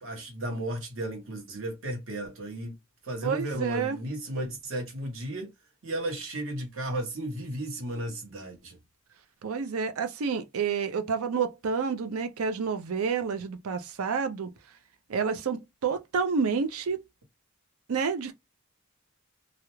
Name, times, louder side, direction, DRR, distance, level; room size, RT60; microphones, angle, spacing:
voice 1, 0.0-2.7 3.0-5.5 5.8-8.8, right 1 dB, 65° right, 0.9 m, -34 dB
voice 2, 3.2-4.0 9.4-14.5 15.1-17.0 17.9-18.3, right 5 dB, 85° right, 0.5 m, -29 dB
2.4 x 2.0 x 3.0 m
head